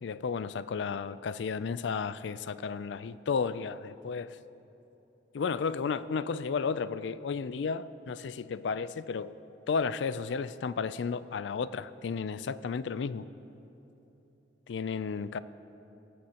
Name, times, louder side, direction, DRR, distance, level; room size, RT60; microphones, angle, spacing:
voice 1, 0.0-4.4 5.3-9.3 9.7-13.3 14.7-15.4, left 5 dB, 70° left, 15 dB, 0.4 m, -33 dB
18.0 x 14.5 x 2.9 m, 3.0 s
head